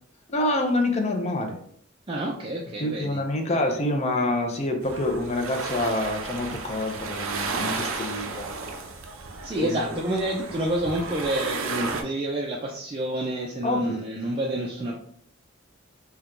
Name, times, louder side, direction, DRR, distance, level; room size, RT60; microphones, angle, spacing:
voice 1, 0.3-1.6 2.8-8.5 9.6-10.0 13.6-14.0, left 1 dB, 35° left, 4 dB, 0.5 m, -27 dB
voice 2, 2.1-3.2 3.7-3.8 9.4-15.0, right 1 dB, 25° right, -3 dB, 0.4 m, -28 dB
sound 1, 4.8-12.0, right 4 dB, 85° right, 0.5 m, -33 dB
4.4 x 2.2 x 2.4 m, 0.63 s
head